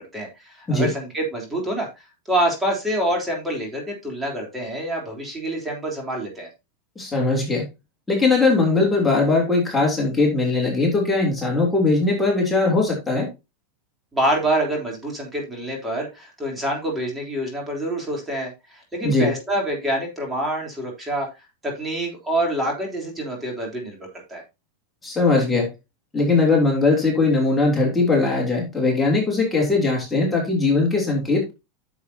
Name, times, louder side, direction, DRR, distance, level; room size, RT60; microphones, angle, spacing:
voice 1, 0.0-1.9 2.3-6.5 14.1-21.3 21.6-24.4, right 1 dB, 15° right, 0 dB, 3.5 m, -26 dB
voice 2, 7.0-7.6 8.1-13.3 19.0-19.3 25.0-25.7 26.1-31.5, left 3 dB, 10° left, -1 dB, 3.1 m, -20 dB
10.0 x 7.2 x 2.8 m, 0.25 s
hypercardioid pair, 115°, 0 cm